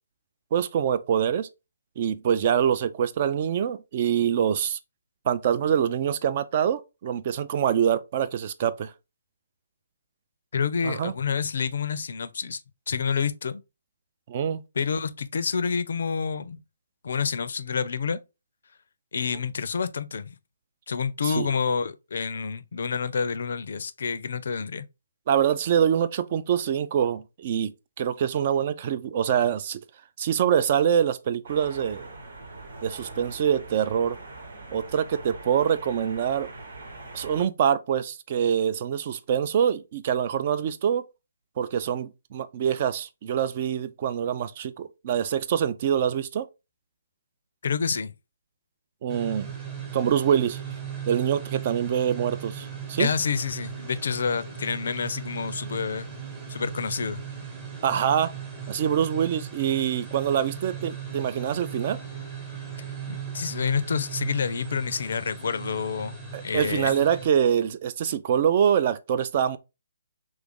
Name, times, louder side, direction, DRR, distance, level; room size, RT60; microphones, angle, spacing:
voice 1, 0.5-1.5 2.0-4.8 5.3-8.9 10.8-11.1 14.3-14.6 21.2-21.5 25.3-27.7 28.0-29.8 30.2-32.1 32.8-34.2 34.7-36.5 37.1-41.0 41.6-46.5 49.0-49.5 49.9-50.6 51.1-53.1 57.8-58.3 58.7-62.0 66.3-69.6, right 8 dB, 40° right, 0.3 m, -25 dB
voice 2, 10.5-12.6 12.9-13.6 14.8-16.6 17.0-18.2 19.1-20.4 20.9-24.8 47.6-48.1 53.0-56.1 56.5-57.2 63.1-66.2 66.4-66.9, left 6 dB, 60° left, 0.4 m, -28 dB
sound 1, 31.4-37.5, right 2 dB, 70° right, 1.2 m, -42 dB
sound 2, 49.1-67.3, right 7 dB, 25° right, 1.0 m, -38 dB
3.1 x 2.4 x 3.5 m
figure-of-eight pair, 145°, 0 cm